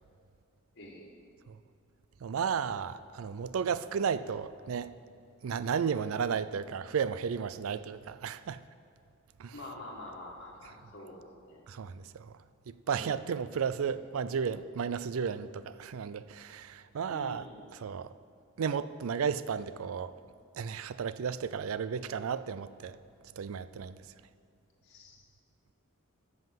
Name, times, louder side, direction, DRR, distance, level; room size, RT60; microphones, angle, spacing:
voice 1, 0.7-1.2 9.5-11.6 13.9-14.0 17.1-17.6 24.8-25.2, left 1 dB, 55° left, -3 dB, 1.6 m, -47 dB
voice 2, 2.2-4.9 5.4-8.6 9.4-9.6 11.7-12.3 12.9-17.5 17.7-18.1 18.6-20.1 20.6-23.0 23.4-24.0, right 6 dB, 80° right, 15 dB, 0.4 m, -33 dB
13.5 x 5.6 x 7.5 m, 2.5 s
head